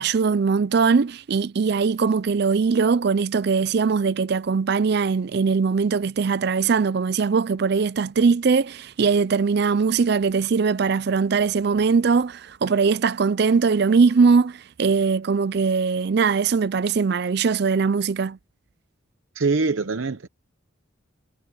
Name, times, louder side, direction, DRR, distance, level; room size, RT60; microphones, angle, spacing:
voice 1, 0.0-18.4, right 5 dB, 50° right, 0.4 m, -21 dB
voice 2, 19.3-20.3, right 4 dB, 75° right, 0.8 m, -23 dB
head